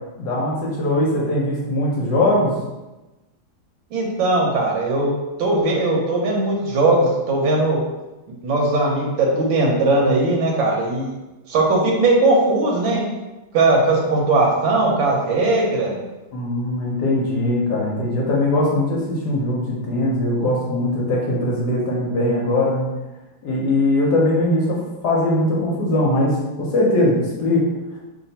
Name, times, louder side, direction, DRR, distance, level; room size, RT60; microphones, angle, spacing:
voice 1, 0.2-2.5 16.3-22.9 23.4-27.6, left 1 dB, 65° left, -3 dB, 1.1 m, -20 dB
voice 2, 3.9-5.1 5.4-7.8 8.4-11.1 11.5-13.0 13.5-15.9, right 2 dB, 80° right, -1 dB, 1.5 m, -19 dB
3.3 x 2.6 x 4.0 m, 1.1 s
omnidirectional pair, 2.2 m